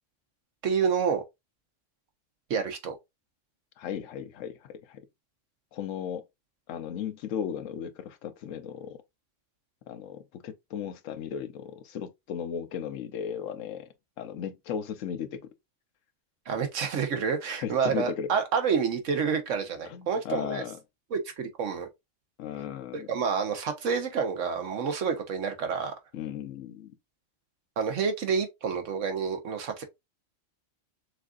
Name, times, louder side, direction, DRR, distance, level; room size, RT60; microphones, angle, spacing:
voice 1, 0.6-1.2 2.5-2.9 16.5-20.6 21.1-21.9 22.9-25.9 27.8-29.8, right 6 dB, 85° right, 1.3 m, -28 dB
voice 2, 3.8-5.0 5.7-6.2 6.7-9.0 9.9-13.9 14.2-15.5 17.6-18.3 19.9-20.8 22.4-23.1 26.1-26.9, left 8 dB, 90° left, 1.0 m, -36 dB
6.3 x 2.5 x 2.4 m
omnidirectional pair, 1.3 m